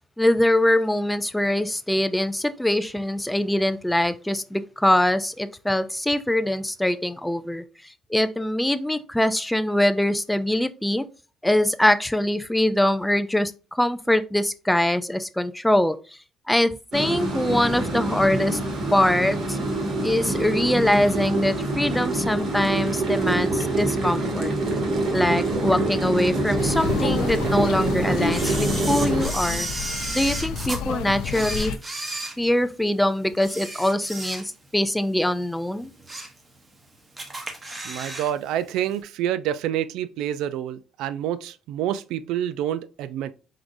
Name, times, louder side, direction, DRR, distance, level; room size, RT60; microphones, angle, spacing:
voice 1, 0.2-7.6 8.1-11.0 11.4-16.0 16.5-18.6 18.9-19.6 20.0-24.5 25.1-29.7 30.1-31.7 32.4-35.9, left 1 dB, 5° left, 0.3 m, -23 dB
sound 1, 16.9-29.3, right 2 dB, 50° right, 1.5 m, -25 dB
sound 2, 26.6-31.8, left 7 dB, 85° left, 0.5 m, -31 dB
Camera, 28.3-30.8 31.3-32.9 33.4-34.8 35.1-35.3 35.8-36.4 36.7-36.8 37.2-38.3 38.6-38.7, right 2 dB, 15° right, 0.8 m, -33 dB
voice 2, 37.8-43.4, right 11 dB, 85° right, 0.4 m, -28 dB
4.6 x 3.8 x 2.6 m
cardioid pair, 165°, 0 cm